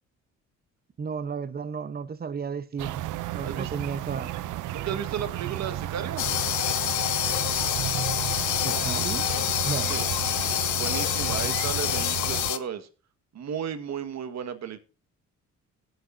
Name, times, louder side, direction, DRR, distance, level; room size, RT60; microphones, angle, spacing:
voice 1, 1.0-3.0 3.3-4.3 8.6-9.3 9.6-9.9, right 6 dB, 30° right, 0.8 m, -33 dB
sound 1, 2.8-12.5, right 13 dB, 80° right, 0.6 m, -33 dB
voice 2, 4.7-6.3 9.9-10.1 10.8-12.9 13.3-14.8, right 8 dB, 60° right, 1.5 m, -34 dB
sound 2, 6.2-12.6, left 13 dB, 75° left, 0.9 m, -27 dB
19.0 x 8.0 x 2.6 m
cardioid pair, 90°, 30 cm